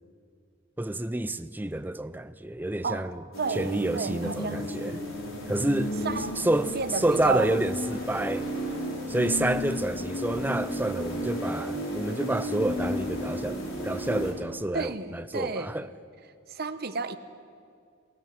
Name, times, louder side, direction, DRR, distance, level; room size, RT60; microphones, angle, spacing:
voice 1, 0.8-3.2 3.5-5.0 5.5-5.9 6.4-8.5 9.1-15.9, right 1 dB, 10° right, 0.5 m, -29 dB
sound 1, 3.3-14.3, equal, 75° left, 4.2 m, -33 dB
voice 2, 3.4-5.2 6.0-6.5 6.7-7.6 14.7-15.9 16.5-17.2, right 4 dB, 45° right, 1.0 m, -32 dB
20.0 x 19.0 x 7.5 m
head